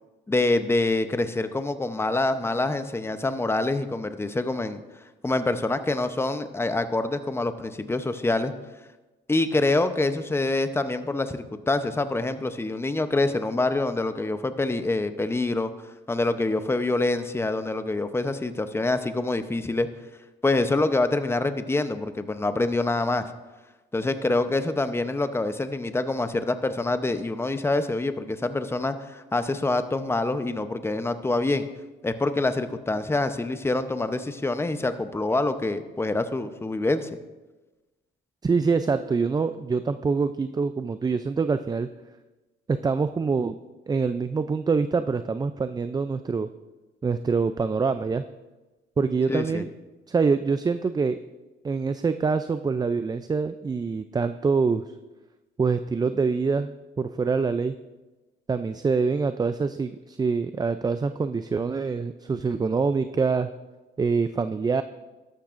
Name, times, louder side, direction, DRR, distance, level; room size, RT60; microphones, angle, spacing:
voice 1, 0.3-4.8 5.2-8.5 9.3-15.7 16.1-19.9 20.4-23.3 23.9-31.7 32.0-37.1 49.3-49.6, left 2 dB, 10° left, 10 dB, 0.7 m, -26 dB
voice 2, 38.4-41.9 42.7-43.5 43.9-46.5 47.0-48.2 49.0-49.7 50.1-51.2 51.6-54.8 55.6-56.7 57.0-57.8 58.5-63.5 64.0-64.8, right 4 dB, 20° right, 11 dB, 0.3 m, -25 dB
13.0 x 12.0 x 2.5 m, 1.2 s
cardioid pair, 90°, 20 cm